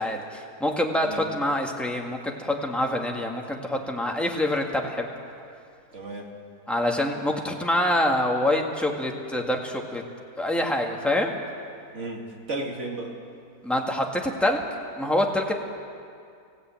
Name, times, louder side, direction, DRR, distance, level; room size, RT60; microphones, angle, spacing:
voice 1, 0.0-5.1 6.7-10.0 10.4-11.3 13.6-14.6 15.0-15.5, left 1 dB, ahead, 0 dB, 1.9 m, -26 dB
voice 2, 5.9-6.3 11.9-13.2, right 2 dB, 45° right, 0 dB, 2.7 m, -34 dB
24.5 x 16.0 x 9.0 m, 2.4 s
omnidirectional pair, 1.8 m